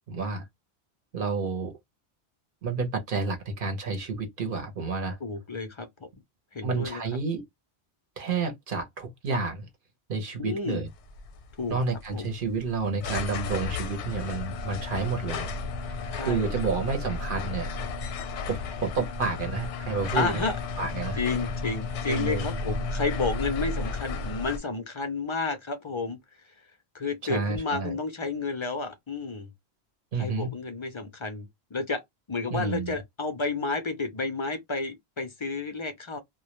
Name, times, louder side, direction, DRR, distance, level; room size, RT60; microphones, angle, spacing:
voice 1, 0.1-0.4 1.1-1.7 2.6-5.2 6.6-7.4 8.2-9.7 10.1-10.9 11.7-15.5 15.9-17.7 18.4-20.3 20.8-21.2 22.1-22.5 27.2-28.0 30.1-30.5 32.5-32.9, right 4 dB, 55° right, 0.8 m, -30 dB
voice 2, 5.2-6.1 6.5-7.0 10.4-10.8 11.6-11.8 12.1-12.3 16.2-16.5 20.1-20.6 21.2-26.2 26.4-26.5 26.9-29.5 30.2-32.0 32.3-36.2, left 4 dB, 55° left, 0.3 m, -31 dB
sound 1, 10.9-24.6, left 4 dB, 85° left, 0.9 m, -33 dB
2.1 x 2.1 x 2.8 m
omnidirectional pair, 1.1 m